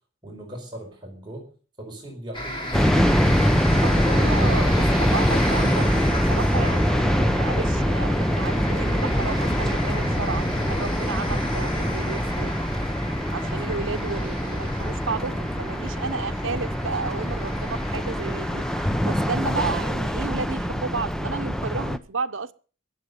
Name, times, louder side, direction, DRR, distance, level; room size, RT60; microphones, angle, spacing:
voice 1, 0.2-1.5 1.8-3.3 3.7-4.1 4.5-4.8 6.4-6.7 13.4-13.5, equal, 25° right, 5.0 m, -38 dB
sound 1, 2.3-19.9, left 1 dB, 25° left, 3.5 m, -34 dB
sound 2, 2.7-22.0, equal, 5° left, 0.7 m, -24 dB
voice 2, 3.8-12.5 13.3-22.5, right 4 dB, 80° right, 0.9 m, -32 dB
21.5 x 7.6 x 6.9 m
head